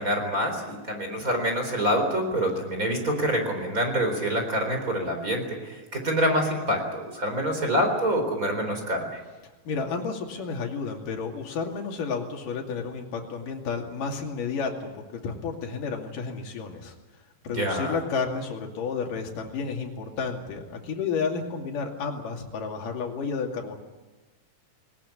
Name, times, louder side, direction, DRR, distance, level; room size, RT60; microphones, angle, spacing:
voice 1, 0.0-9.2 17.5-18.0, equal, 25° right, 4 dB, 4.2 m, -26 dB
voice 2, 9.7-16.9 17.4-23.8, left 5 dB, 75° left, 1 dB, 4.1 m, -31 dB
20.5 x 19.0 x 9.7 m, 1.1 s
omnidirectional pair, 3.9 m